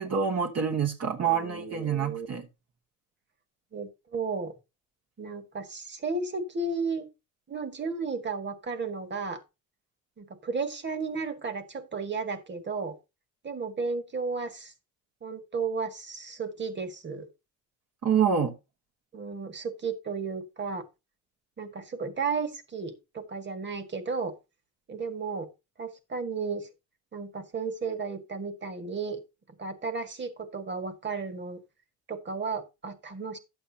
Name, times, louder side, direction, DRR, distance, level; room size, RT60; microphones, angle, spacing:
voice 1, 0.0-2.5 18.0-18.5, right 7 dB, 55° right, 1.2 m, -26 dB
voice 2, 1.2-2.3 3.7-4.5 5.2-7.1 7.5-9.4 10.2-13.0 13.4-14.7 15.2-17.3 19.1-20.8 21.6-24.4 24.9-25.5 25.8-26.7 27.1-29.2 29.6-31.6 32.1-33.4, right 4 dB, 35° right, 1.7 m, -33 dB
11.5 x 8.0 x 2.8 m
cardioid pair, 90°, 30 cm